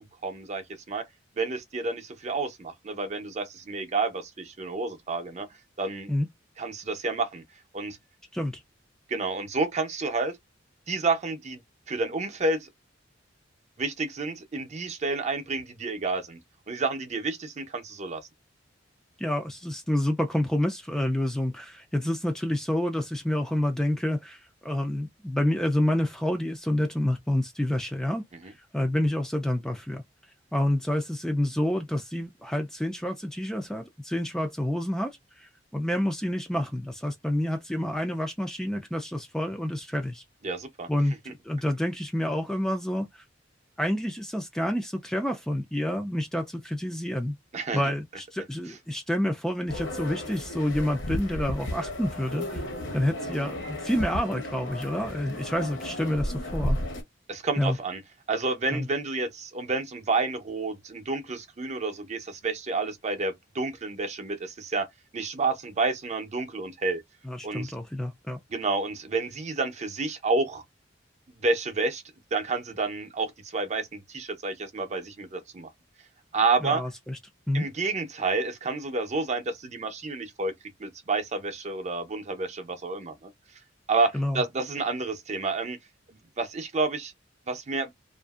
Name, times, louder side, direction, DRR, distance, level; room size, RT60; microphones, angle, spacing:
voice 1, 0.2-1.0 1.4-5.5 5.8-6.1 6.6-7.4 7.7-8.0 9.1-10.4 10.9-11.6 11.9-12.7 13.8-16.4 16.7-18.2 40.4-40.9 47.5-47.9 57.3-58.0 58.3-64.9 65.1-67.0 67.4-67.7 68.5-70.6 71.3-72.0 72.3-75.7 76.3-76.8 77.5-80.5 80.8-83.3 83.9-85.8 86.4-87.1 87.5-87.9, right 3 dB, 40° right, 0.6 m, -29 dB
voice 2, 19.2-30.0 30.5-40.2 40.9-43.2 43.8-47.4 47.7-52.7 52.9-56.8 57.6-57.8 58.7-58.9 67.2-68.4 76.6-77.2 77.5-77.7 84.1-84.4, left 1 dB, 5° left, 0.3 m, -28 dB
sound 1, 49.7-57.0, left 1 dB, 75° left, 0.9 m, -33 dB
2.7 x 2.5 x 2.3 m
head